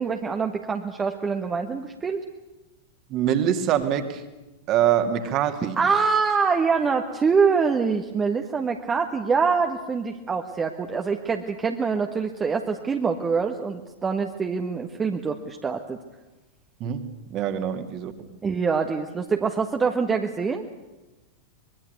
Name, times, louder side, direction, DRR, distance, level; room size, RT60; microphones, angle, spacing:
voice 1, 0.0-2.2 5.8-16.0 18.4-20.6, right 5 dB, 20° right, 4 dB, 1.6 m, -25 dB
voice 2, 3.1-4.2 4.7-5.8 16.8-18.3, right 10 dB, 35° right, 7 dB, 2.7 m, -24 dB
24.5 x 22.0 x 8.2 m, 1.1 s
figure-of-eight pair, 90°, 0 cm